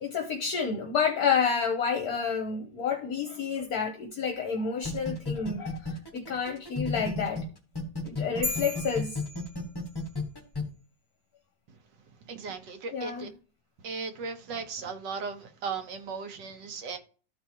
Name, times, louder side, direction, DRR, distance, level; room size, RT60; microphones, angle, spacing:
voice 1, 0.0-7.4 8.0-9.2 12.9-13.3, left 6 dB, 65° left, 1.3 m, -29 dB
sound 1, 4.8-7.4 7.8-10.6, left 4 dB, 15° left, 1.2 m, -32 dB
sound 2, 8.4-10.2, left 2 dB, 50° right, 2.9 m, -36 dB
voice 2, 12.3-13.3 13.8-17.0, right 5 dB, 90° right, 1.6 m, -36 dB
13.5 x 4.6 x 2.8 m
omnidirectional pair, 1.9 m